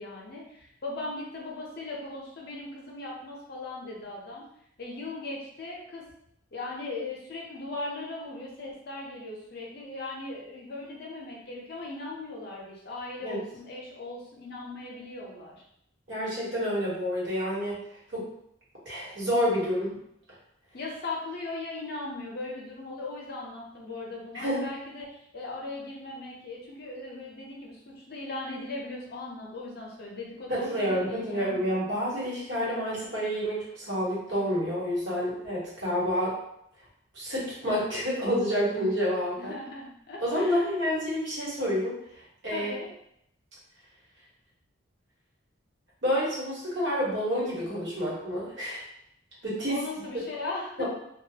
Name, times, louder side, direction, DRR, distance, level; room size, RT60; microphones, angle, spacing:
voice 1, 0.0-4.5 4.8-6.0 6.5-15.6 20.7-31.7 39.4-40.7 42.5-42.9 49.7-50.8, left 2 dB, 50° left, -2 dB, 0.6 m, -38 dB
voice 2, 16.1-17.8 18.1-18.3 18.8-20.0 24.3-24.6 30.5-36.3 37.1-39.5 40.2-42.0 42.4-42.7 46.0-48.8 49.4-49.8 50.8-50.9, equal, 60° right, -7 dB, 1.1 m, -28 dB
2.4 x 2.2 x 2.8 m, 0.74 s
head